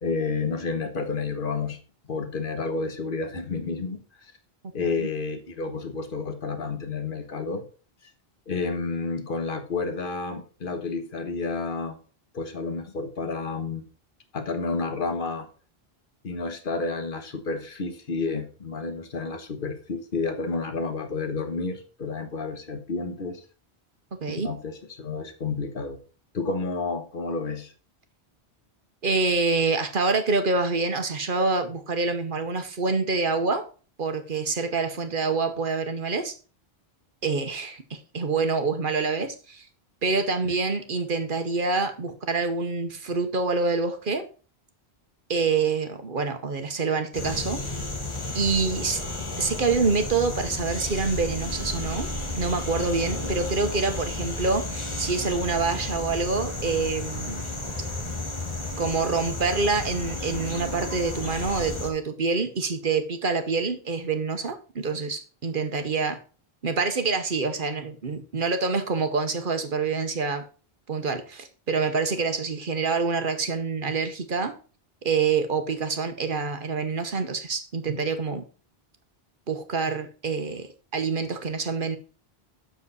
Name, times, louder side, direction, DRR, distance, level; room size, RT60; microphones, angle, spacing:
voice 1, 0.0-1.8 2.1-4.3 4.7-7.6 8.5-12.0 12.3-13.8 14.3-15.5 16.2-23.4 24.2-26.0 26.3-27.7 40.4-40.5 81.2-81.3, left 4 dB, 55° left, 1.4 m, -30 dB
voice 2, 24.2-24.5 29.0-33.7 34.0-36.3 37.2-39.6 40.0-44.3 45.3-47.6 48.3-49.0 49.4-52.1 52.3-57.4 58.8-66.2 66.6-70.4 70.9-74.5 75.0-78.4 79.5-80.7 80.9-82.0, right 4 dB, 55° right, 1.1 m, -26 dB
sound 1, 47.1-61.9, left 2 dB, 30° left, 1.3 m, -32 dB
7.5 x 6.5 x 4.0 m
omnidirectional pair, 1.1 m